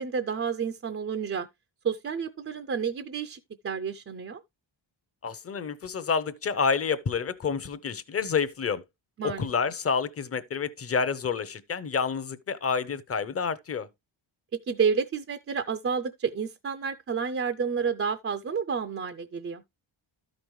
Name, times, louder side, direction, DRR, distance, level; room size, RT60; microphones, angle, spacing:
voice 1, 0.0-1.5 1.8-4.4 9.2-9.5 14.5-19.6, right 6 dB, 30° right, 0.4 m, -30 dB
voice 2, 5.2-8.8 9.2-13.9, left 5 dB, 30° left, 0.6 m, -29 dB
13.0 x 5.2 x 3.0 m
wide cardioid pair, 175°, 46 cm